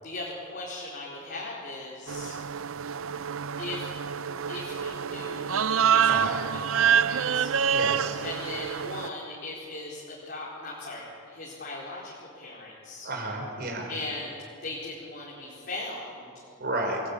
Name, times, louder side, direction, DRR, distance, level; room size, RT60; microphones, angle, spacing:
voice 1, 0.0-2.3 3.6-3.9 4.5-6.4 6.7-7.5 8.2-13.1 13.9-16.5, left 2 dB, 45° left, -5 dB, 4.3 m, -39 dB
sound 1, 2.1-9.1, right 7 dB, 65° right, 0.5 m, -27 dB
voice 2, 6.0-6.4 7.7-8.2 13.0-13.9 16.6-17.0, right 2 dB, 45° right, 1 dB, 5.2 m, -32 dB
28.5 x 19.0 x 8.7 m, 2.6 s
head